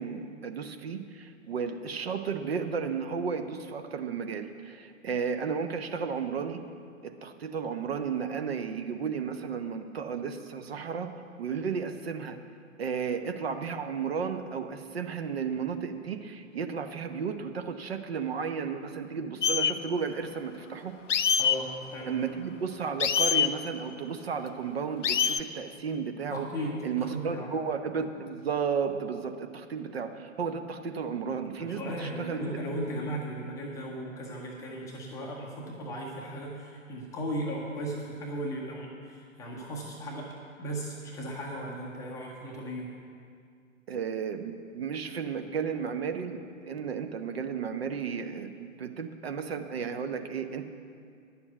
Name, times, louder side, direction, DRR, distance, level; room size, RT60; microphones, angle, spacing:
voice 1, 0.0-6.6 7.0-11.1 11.4-12.4 12.8-20.9 22.1-26.5 26.8-32.4 43.9-50.6, right 6 dB, 50° right, 7 dB, 0.8 m, -33 dB
sound 1, 19.4-19.7 21.1-21.6 23.0-23.5 25.0-25.4, left 7 dB, 65° left, 0.5 m, -24 dB
voice 2, 21.4-22.2 26.3-27.5 31.6-40.3 40.6-42.9, right 1 dB, 10° left, -2 dB, 0.6 m, -36 dB
10.0 x 7.0 x 7.9 m, 2.3 s
figure-of-eight pair, 120°, 40 cm